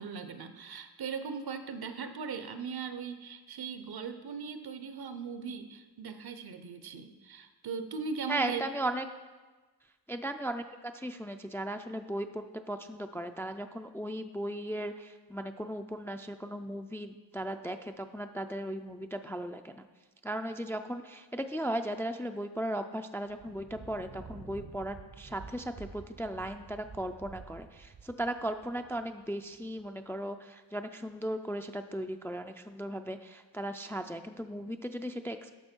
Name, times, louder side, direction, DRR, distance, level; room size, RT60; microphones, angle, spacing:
voice 1, 0.0-8.6, right 5 dB, 65° right, 9 dB, 0.8 m, -39 dB
voice 2, 8.3-9.1 10.1-19.8 20.2-35.5, right 1 dB, 5° left, 7 dB, 0.3 m, -37 dB
Thunder, 23.2-29.9, right 5 dB, 35° right, 0.6 m, -50 dB
11.5 x 6.4 x 4.5 m, 1.3 s
wide cardioid pair, 115°, 41 cm